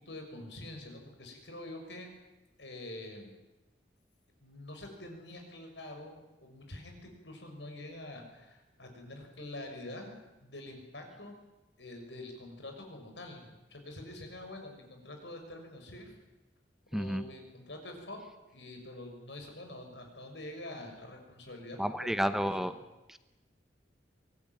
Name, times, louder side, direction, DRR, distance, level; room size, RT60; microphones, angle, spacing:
voice 1, 0.0-2.1 2.6-3.3 4.4-10.1 10.4-11.4 11.8-16.2 16.9-18.2 18.5-22.1 22.4-22.7, left 1 dB, 80° left, 4 dB, 6.4 m, -46 dB
voice 2, 16.9-17.2 21.8-22.7 23.1-23.2, equal, ahead, 10 dB, 0.8 m, -31 dB
24.0 x 18.5 x 9.2 m, 1.0 s
head